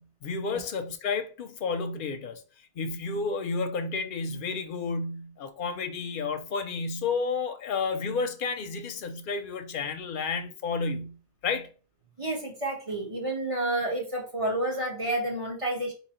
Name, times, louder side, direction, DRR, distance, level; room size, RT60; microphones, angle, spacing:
voice 1, 0.0-2.4 2.8-11.7, left 4 dB, 55° left, 0.8 m, -31 dB
voice 2, 12.2-15.9, right 1 dB, 30° right, 1.4 m, -30 dB
3.8 x 2.9 x 4.3 m
omnidirectional pair, 1.1 m